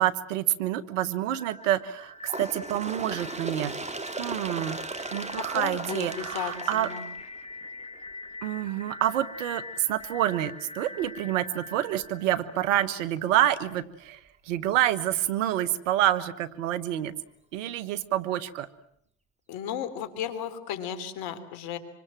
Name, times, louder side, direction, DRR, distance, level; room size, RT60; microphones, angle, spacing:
voice 1, 0.0-3.7 4.2-4.8 5.1-6.9 8.4-17.1 17.5-18.7, right 12 dB, 90° right, 16 dB, 1.5 m, -28 dB
sound 1, 1.3-13.2, left 2 dB, 15° left, 2.7 m, -43 dB
Bird, 2.2-7.7 8.6-8.7 9.1-9.2 10.0-10.1 11.0-11.1 12.0-12.1, right 3 dB, 20° right, 3.1 m, -37 dB
voice 2, 5.4-7.0 19.5-21.8, left 9 dB, 75° left, 10 dB, 3.6 m, -34 dB
26.5 x 25.0 x 7.6 m, 0.70 s
supercardioid pair, 80°, 37 cm